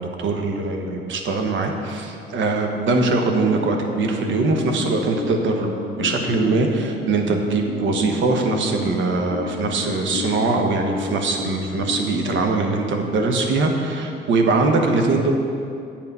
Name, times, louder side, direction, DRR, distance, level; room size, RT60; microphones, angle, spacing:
voice 1, 0.0-15.3, right 3 dB, 70° right, 3 dB, 1.1 m, -22 dB
sound 1, 3.4-12.3, left 6 dB, 85° left, 0.5 m, -32 dB
8.5 x 6.0 x 5.4 m, 2.5 s
cardioid pair, 90°, 20 cm